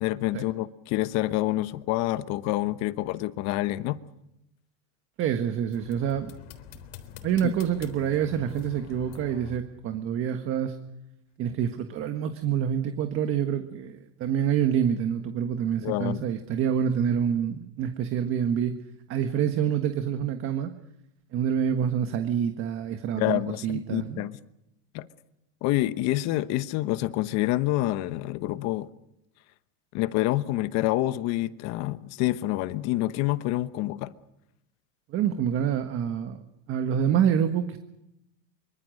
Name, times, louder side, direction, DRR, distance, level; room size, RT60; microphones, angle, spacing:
voice 1, 0.0-4.0 7.4-7.5 15.8-16.3 23.1-24.4 24.9-25.1 25.6-28.9 29.9-34.1, left 16 dB, 45° left, 1.1 m, -27 dB
voice 2, 5.2-6.3 7.2-10.7 11.4-18.7 19.1-20.7 21.3-24.2 35.1-36.4 36.7-37.8, right 9 dB, 35° right, 1.5 m, -27 dB
sound 1, 5.7-9.6, left 9 dB, 60° left, 3.7 m, -45 dB
25.0 x 24.5 x 6.5 m
supercardioid pair, 145°, 38 cm